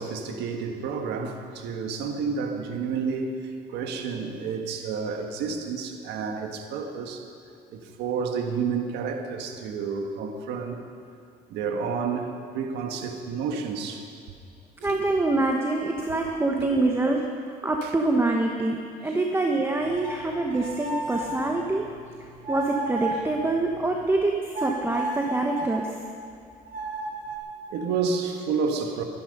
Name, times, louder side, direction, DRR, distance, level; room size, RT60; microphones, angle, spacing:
voice 1, 0.0-3.3 3.7-7.2 7.7-10.8 11.5-14.1 14.8-15.0 16.6-16.7 17.8-17.9 27.7-29.0, right 5 dB, 85° right, 4 dB, 1.6 m, -30 dB
voice 2, 14.8-21.9 22.5-25.9, right 2 dB, 15° right, 1 dB, 1.1 m, -25 dB
sound 1, 19.8-24.2 24.5-25.8 26.7-27.4, right 2 dB, 50° right, 2.8 m, -34 dB
23.0 x 10.5 x 5.4 m, 2.4 s
cardioid pair, 110°, 17 cm